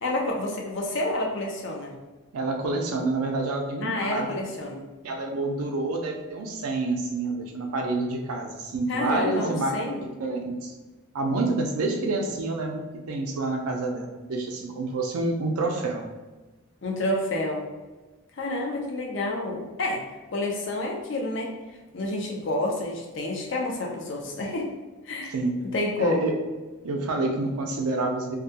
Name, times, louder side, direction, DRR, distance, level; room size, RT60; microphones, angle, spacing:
voice 1, 0.0-1.9 3.8-4.8 8.9-10.0 16.8-17.6 18.4-20.0 20.3-21.5 21.9-24.7 25.1-25.3 25.7-26.3, left 2 dB, 55° left, 0 dB, 0.5 m, -29 dB
voice 2, 2.3-4.4 5.0-9.7 10.2-10.7 11.1-16.0 25.3-25.6 26.0-26.4 26.8-28.4, right 2 dB, 90° right, 2 dB, 0.4 m, -28 dB
2.3 x 2.1 x 2.7 m, 1.2 s
head